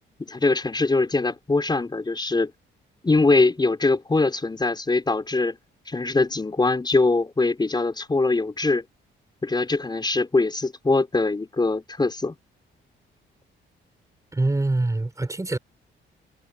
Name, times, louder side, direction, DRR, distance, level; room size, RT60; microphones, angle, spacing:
voice 1, 0.2-2.5 3.0-5.6 5.9-8.8 9.4-12.4, left 3 dB, 20° left, 5.2 m, -22 dB
voice 2, 14.3-15.6, right 2 dB, 15° right, 4.9 m, -24 dB
cardioid pair, 90°, 20 cm